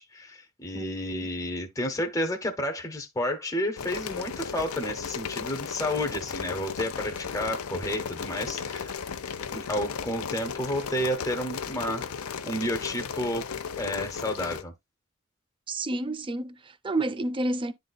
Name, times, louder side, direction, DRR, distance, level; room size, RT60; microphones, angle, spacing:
voice 1, 0.0-9.0 9.5-12.1 12.4-13.5 13.8-14.7, left 1 dB, 15° left, 0.7 m, -31 dB
voice 2, 0.7-1.3 15.7-17.7, right 2 dB, 25° right, 0.5 m, -30 dB
sound 1, 3.8-14.6, left 6 dB, 85° left, 0.7 m, -35 dB
10.5 x 4.0 x 2.3 m
head